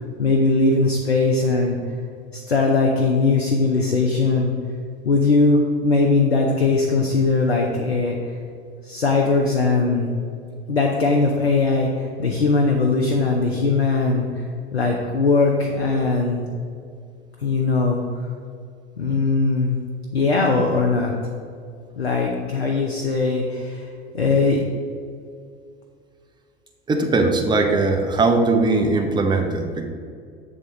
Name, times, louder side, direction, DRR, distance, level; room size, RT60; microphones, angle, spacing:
voice 1, 0.2-1.8 2.3-4.5 5.0-8.4 8.8-10.1 10.7-14.4 14.7-16.4 17.4-18.2 19.0-19.8 20.1-21.1 22.0-23.9 24.1-24.6, left 3 dB, 85° left, 0 dB, 0.6 m, -20 dB
voice 2, 26.9-29.9, right 3 dB, 15° right, 3 dB, 0.6 m, -20 dB
7.5 x 3.5 x 3.8 m, 2.2 s
figure-of-eight pair, 75°, 30 cm